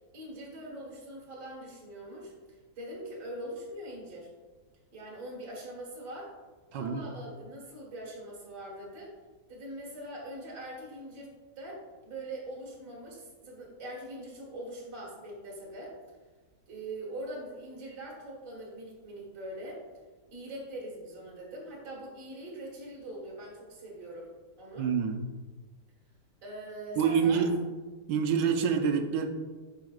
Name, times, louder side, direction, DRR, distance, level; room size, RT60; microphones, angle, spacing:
voice 1, 0.1-4.3 4.9-6.3 6.7-9.1 9.5-11.3 11.6-16.0 16.7-19.8 20.3-24.3 24.6-24.9 26.4-27.5, right 1 dB, 45° right, -4 dB, 2.0 m, -42 dB
voice 2, 6.7-7.1 24.8-25.2 27.0-27.6 28.1-29.3, right 6 dB, 75° right, 5 dB, 1.3 m, -26 dB
9.1 x 5.0 x 2.4 m, 1.3 s
omnidirectional pair, 2.0 m